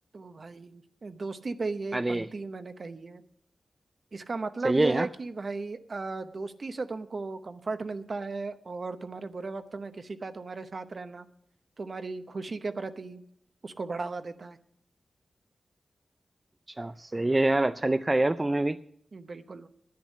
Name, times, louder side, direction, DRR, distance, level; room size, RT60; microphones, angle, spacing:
voice 1, 0.1-3.2 4.1-11.3 11.8-13.2 13.6-14.6 19.1-19.7, right 3 dB, 50° right, 10 dB, 0.8 m, -36 dB
voice 2, 1.9-2.3 4.6-5.1 16.8-18.8, right 2 dB, 25° right, 11 dB, 0.4 m, -25 dB
10.5 x 9.9 x 6.5 m, 0.68 s
wide cardioid pair, 75°, 0 cm